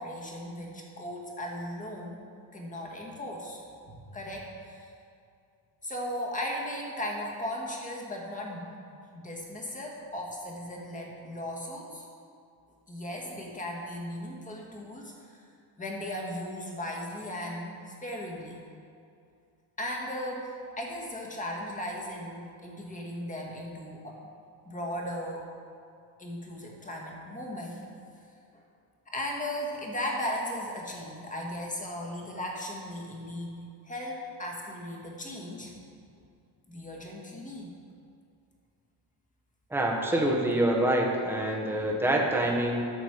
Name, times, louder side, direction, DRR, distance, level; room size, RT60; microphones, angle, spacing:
voice 1, 0.0-2.2 2.5-4.9 5.8-8.7 9.1-12.1 12.9-15.4 15.8-18.6 19.8-20.5 20.8-24.2 24.6-25.4 26.2-27.8 29.1-35.8 36.7-37.7 41.7-42.0 42.4-42.5, left 1 dB, 15° left, -2 dB, 1.7 m, -37 dB
voice 2, 39.7-42.8, right 1 dB, 5° right, -2 dB, 1.2 m, -26 dB
12.5 x 6.6 x 4.7 m, 2.5 s
cardioid pair, 145°, 49 cm